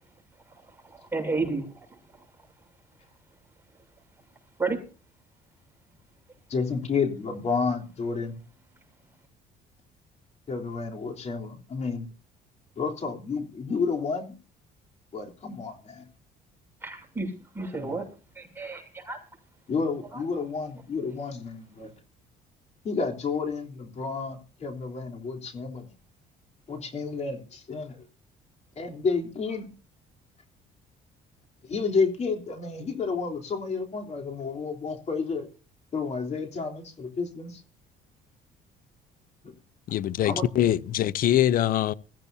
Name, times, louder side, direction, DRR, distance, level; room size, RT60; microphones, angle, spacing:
voice 1, 0.8-2.0 4.6-4.8 16.8-18.1 18.4-19.2 20.1-20.2, right 3 dB, 10° right, 7.2 m, -32 dB
voice 2, 6.5-8.4 10.5-12.1 12.7-14.3 15.1-16.0 17.7-18.0 19.7-21.9 22.8-25.9 26.7-28.0 28.7-29.6 31.6-35.5 35.9-37.6 39.4-39.5 40.2-40.5, left 4 dB, 40° left, 3.5 m, -30 dB
voice 3, 39.9-41.9, left 12 dB, 55° left, 0.6 m, -23 dB
22.0 x 15.0 x 2.7 m
cardioid pair, 110°, 17 cm